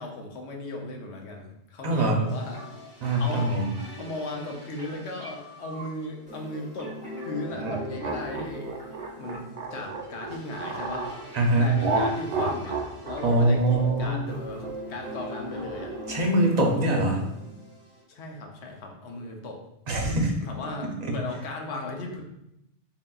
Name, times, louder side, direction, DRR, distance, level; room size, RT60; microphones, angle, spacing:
voice 1, 0.0-2.6 3.2-3.5 4.0-8.7 9.2-11.1 11.6-16.1 18.1-19.6 20.0-22.2, left 2 dB, 75° left, 1 dB, 0.9 m, -37 dB
voice 2, 1.8-2.2 3.0-3.6 11.3-11.7 13.2-14.2 16.1-17.2 19.9-20.3, right 1 dB, 45° right, 0 dB, 0.7 m, -23 dB
sound 1, 2.0-18.0, equal, 5° right, 1.1 m, -41 dB
sound 2, 7.5-11.1 11.8-16.3, right 3 dB, 80° right, 0.9 m, -31 dB
3.8 x 3.7 x 2.3 m, 0.83 s
omnidirectional pair, 1.2 m